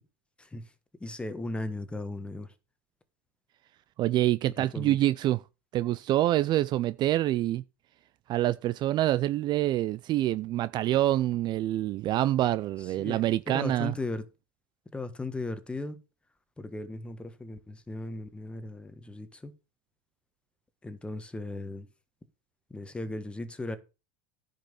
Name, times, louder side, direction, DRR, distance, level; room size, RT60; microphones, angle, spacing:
voice 1, 0.4-0.7 1.0-2.5 4.6-5.0 12.8-14.2 14.9-16.0 16.6-19.5 20.8-21.9 22.7-23.8, left 2 dB, 10° left, 1.4 m, -37 dB
voice 2, 4.0-5.4 5.7-7.6 8.3-13.9, right 14 dB, 40° right, 0.4 m, -26 dB
10.5 x 5.4 x 7.0 m
supercardioid pair, 125°, 12 cm